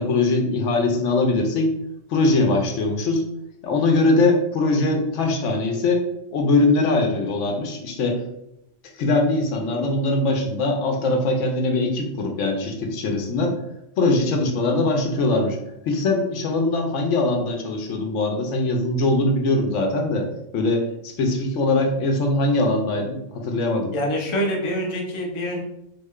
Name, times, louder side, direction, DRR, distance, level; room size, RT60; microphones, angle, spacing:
voice 1, 0.0-1.7 2.1-3.3 3.6-6.0 6.3-8.2 9.0-13.6 14.0-15.6 15.9-20.3 20.5-23.9, left 2 dB, 75° left, 3 dB, 0.9 m, -21 dB
voice 2, 23.9-25.6, equal, 40° left, -1 dB, 0.5 m, -25 dB
3.8 x 2.1 x 3.6 m, 0.82 s
omnidirectional pair, 1.3 m